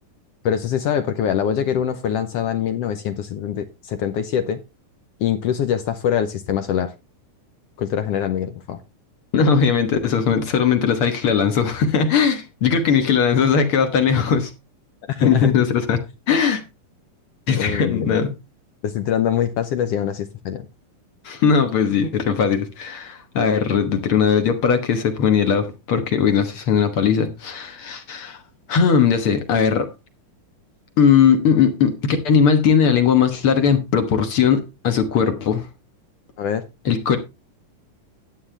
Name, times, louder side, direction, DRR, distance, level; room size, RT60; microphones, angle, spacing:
voice 1, 0.4-4.6 5.2-6.9 7.8-8.8 15.1-15.5 17.6-18.2 18.8-20.7 36.4-36.6, left 9 dB, 75° left, 1.4 m, -23 dB
voice 2, 9.3-14.5 15.2-16.0 16.3-16.6 17.5-18.3 21.2-28.4 28.7-29.9 31.0-35.7 36.8-37.2, left 6 dB, 55° left, 1.8 m, -19 dB
11.5 x 9.5 x 3.3 m
omnidirectional pair, 3.7 m